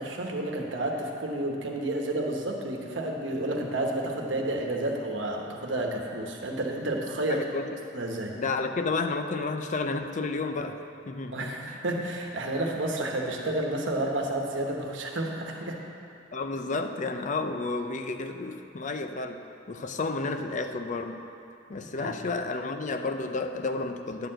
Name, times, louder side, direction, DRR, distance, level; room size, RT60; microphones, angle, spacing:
voice 1, 0.0-7.4 7.9-8.4 11.3-15.8 22.0-22.1, right 1 dB, 75° right, 1 dB, 1.1 m, -30 dB
voice 2, 7.3-7.7 8.4-11.9 16.3-19.4 19.7-21.2 21.7-24.3, left 3 dB, 40° left, 7 dB, 0.5 m, -31 dB
10.5 x 4.6 x 7.5 m, 2.7 s
head